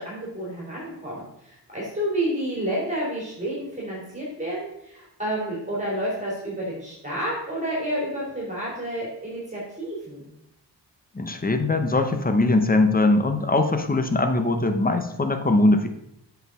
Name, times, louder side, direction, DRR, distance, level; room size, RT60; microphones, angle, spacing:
voice 1, 0.0-10.3, right 1 dB, 15° right, -6 dB, 3.1 m, -30 dB
voice 2, 11.1-15.9, left 2 dB, 20° left, 6 dB, 0.8 m, -21 dB
7.9 x 5.7 x 3.7 m, 0.82 s
cardioid pair, 75°, 42 cm